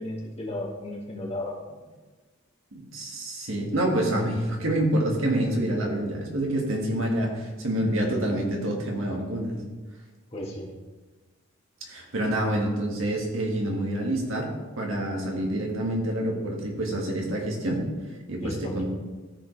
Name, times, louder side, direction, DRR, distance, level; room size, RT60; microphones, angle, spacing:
voice 1, 0.0-1.5 10.3-10.7 18.4-18.8, left 1 dB, 30° left, -3 dB, 1.7 m, -34 dB
voice 2, 2.7-9.6 11.9-14.5 14.8-17.8 18.3-18.8, right 1 dB, 85° right, -1 dB, 1.9 m, -27 dB
13.5 x 5.1 x 3.3 m, 1.3 s
head